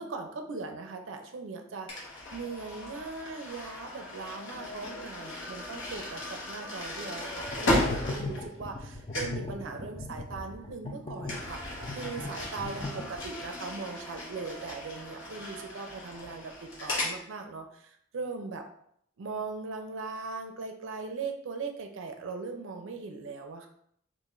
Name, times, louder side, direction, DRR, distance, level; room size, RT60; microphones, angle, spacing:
voice 1, 0.0-18.6 19.2-23.7, right 4 dB, 70° right, 4 dB, 0.4 m, -39 dB
sound 1, 1.9-8.9 9.1-9.5 11.2-17.2, left 1 dB, 70° left, 1.1 m, -35 dB
sound 2, 7.4-13.5, left 2 dB, 25° left, 0.4 m, -39 dB
3.0 x 2.5 x 3.7 m, 0.68 s
head